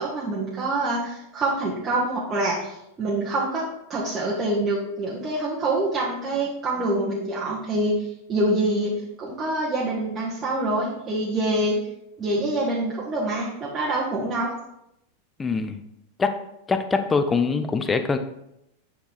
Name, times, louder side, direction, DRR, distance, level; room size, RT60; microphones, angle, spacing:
voice 1, 0.0-3.6 3.9-8.9 9.2-11.8 12.2-14.5, right 2 dB, 20° right, -7 dB, 1.6 m, -25 dB
voice 2, 15.4-15.8 16.2-16.4 16.7-18.2, left 4 dB, 15° left, 9 dB, 0.6 m, -23 dB
9.1 x 4.6 x 3.5 m, 0.83 s
figure-of-eight pair, 90°, 0 cm